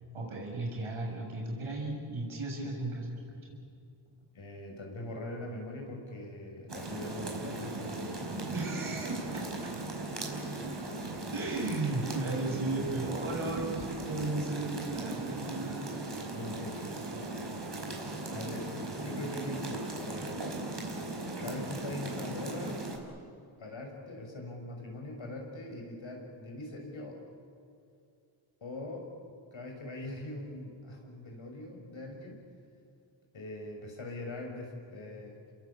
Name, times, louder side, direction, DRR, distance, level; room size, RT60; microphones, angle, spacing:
voice 1, 0.1-3.6 8.5-9.7 11.3-16.0, right 2 dB, 90° right, -1 dB, 7.3 m, -35 dB
voice 2, 4.3-8.5 16.3-16.9 18.3-20.5 21.4-22.8 23.6-27.2 28.6-29.1 29.5-32.4 33.3-35.4, left 1 dB, 70° left, 1 dB, 6.6 m, -42 dB
sound 1, 6.7-23.0, right 2 dB, 55° right, 5.3 m, -38 dB
28.5 x 22.0 x 8.7 m, 2.5 s
cardioid pair, 45°, 48 cm